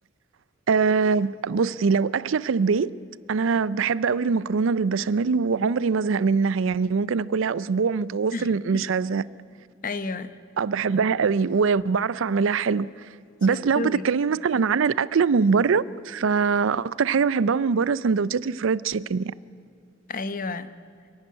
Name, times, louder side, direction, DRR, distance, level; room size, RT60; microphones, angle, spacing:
voice 1, 0.7-2.9 3.3-9.2 10.6-12.9 13.4-19.3, right 5 dB, 70° right, 0.5 m, -23 dB
voice 2, 8.3-8.8 9.8-10.3 13.5-14.0 20.1-20.7, left 3 dB, 45° left, 0.9 m, -31 dB
26.5 x 11.5 x 9.5 m
head